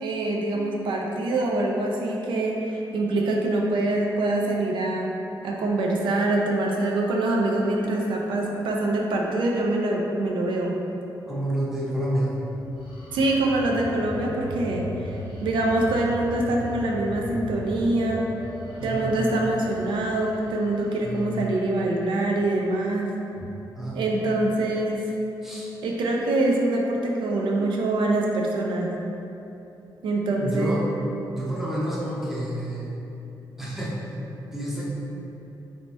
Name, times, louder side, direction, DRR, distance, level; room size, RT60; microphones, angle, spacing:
voice 1, 0.0-5.2 5.4-10.8 13.1-14.9 15.4-18.3 18.8-23.1 23.9-25.1 25.8-28.9 30.0-30.8, right 2 dB, 80° right, -1 dB, 0.4 m, -24 dB
voice 2, 11.3-12.3 18.8-19.2 21.0-21.4 23.4-23.5 23.7-24.1 25.4-25.7 30.3-30.8 31.3-33.0 33.6-34.1 34.5-34.9, right 1 dB, 5° right, -6 dB, 0.5 m, -29 dB
sound 1, 12.5-22.2, equal, 85° left, 0.7 m, -38 dB
3.1 x 2.8 x 3.3 m, 3.0 s
wide cardioid pair, 160°, 8 cm